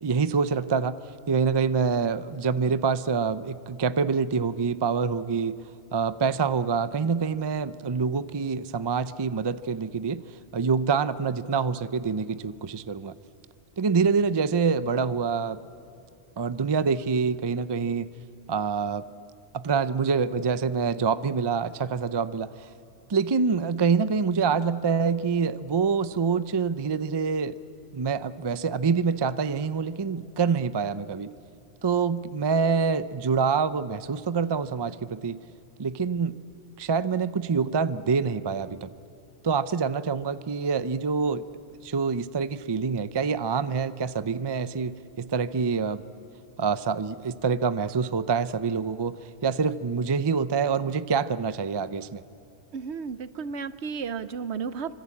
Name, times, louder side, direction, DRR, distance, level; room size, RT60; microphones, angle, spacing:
voice 1, 0.0-1.0 1.3-5.6 5.9-10.2 10.5-13.1 13.8-15.6 16.4-18.1 18.5-19.0 19.5-22.7 23.1-27.6 27.9-31.3 31.8-35.4 35.8-36.4 36.8-38.9 39.4-41.5 41.8-46.0 46.6-49.2 49.4-52.2, right 5 dB, 30° right, 13 dB, 0.5 m, -26 dB
voice 2, 52.7-54.9, right 6 dB, 70° right, 13 dB, 1.0 m, -33 dB
25.5 x 25.0 x 8.5 m, 2.7 s
omnidirectional pair, 1.2 m